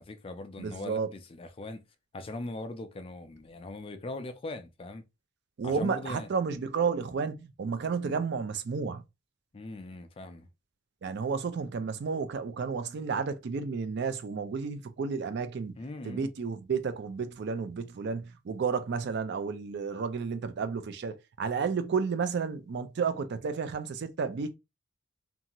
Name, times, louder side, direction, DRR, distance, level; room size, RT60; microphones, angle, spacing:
voice 1, 0.0-1.8 2.1-5.0 5.6-6.3 9.5-10.5 15.8-16.3, left 2 dB, 25° left, 0.3 m, -40 dB
voice 2, 0.6-1.1 5.6-9.0 11.0-15.8 16.0-24.5, right 5 dB, 55° right, 0.4 m, -32 dB
2.6 x 2.3 x 2.9 m
head